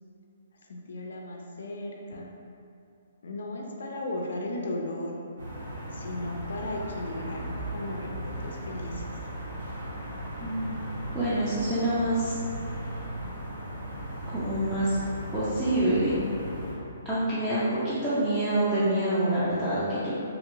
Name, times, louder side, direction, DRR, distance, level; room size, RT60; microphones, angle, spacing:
voice 1, 0.7-2.3 3.2-5.1 5.9-9.1, left 1 dB, 75° left, 0 dB, 0.4 m, -36 dB
sound 1, 5.4-16.7, right 1 dB, 70° right, 1.4 m, -37 dB
voice 2, 10.4-10.8 11.1-12.4 14.3-15.0 15.3-16.2 17.0-20.2, right 1 dB, 10° right, -12 dB, 0.5 m, -26 dB
2.9 x 2.9 x 2.6 m, 2.6 s
hypercardioid pair, 155°, 0 cm